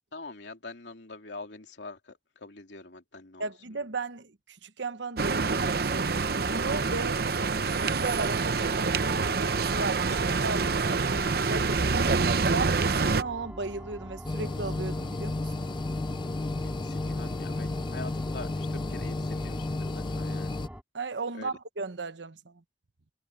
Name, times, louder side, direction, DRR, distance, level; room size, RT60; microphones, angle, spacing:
voice 1, 0.1-3.5 16.6-20.5 21.4-21.5, left 3 dB, 75° left, 2.8 m, -44 dB
voice 2, 3.4-11.0 11.5-12.1 12.5-15.5 20.9-22.6, right 3 dB, 80° right, 1.1 m, -36 dB
sound 1, 5.2-13.2, right 4 dB, 55° right, 0.8 m, -26 dB
sound 2, 8.6-20.8, equal, 5° right, 5.1 m, -43 dB
sound 3, 14.2-20.7, left 2 dB, 25° left, 0.4 m, -32 dB
head